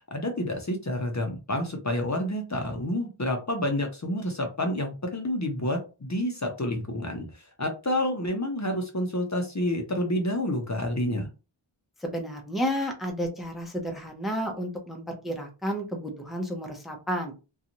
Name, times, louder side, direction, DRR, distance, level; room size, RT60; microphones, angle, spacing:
voice 1, 0.0-7.3 7.6-11.3, left 1 dB, 35° left, 3 dB, 0.6 m, -29 dB
voice 2, 12.0-17.3, equal, ahead, 3 dB, 0.6 m, -31 dB
2.6 x 2.3 x 2.9 m, 0.31 s
wide cardioid pair, 45°, 48 cm